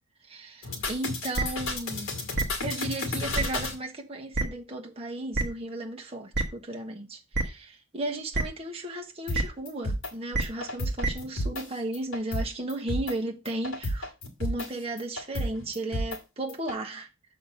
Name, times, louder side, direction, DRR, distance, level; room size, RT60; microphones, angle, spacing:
voice 1, 0.3-2.1 2.6-14.1 14.4-17.1, right 2 dB, 25° right, 1.1 m, -35 dB
sound 1, 0.6-3.7 9.3-9.4 9.6-10.1 10.4-11.6 11.9-12.4 12.7-13.1 13.4-14.7 15.0-16.2 16.5-16.7, left 1 dB, 65° left, 2.3 m, -32 dB
sound 2, 1.3-1.4 2.3-2.4 3.3-3.4 4.3-4.4 5.3-5.4 6.3-6.4 7.3-7.4 8.3-8.4 9.3-9.4 10.3-10.4 11.0-11.1, right 2 dB, 50° right, 1.1 m, -25 dB
6.7 x 4.2 x 6.3 m
head